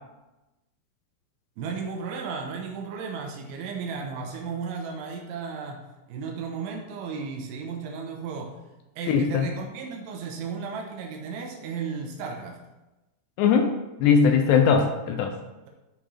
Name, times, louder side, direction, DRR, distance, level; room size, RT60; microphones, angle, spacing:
voice 1, 1.6-8.6 9.0-12.6, right 5 dB, 85° right, 1 dB, 3.4 m, -34 dB
voice 2, 9.1-9.5 13.4-13.7 14.0-15.4, left 6 dB, 80° left, 5 dB, 2.6 m, -20 dB
12.0 x 5.1 x 4.3 m, 1.0 s
omnidirectional pair, 5.3 m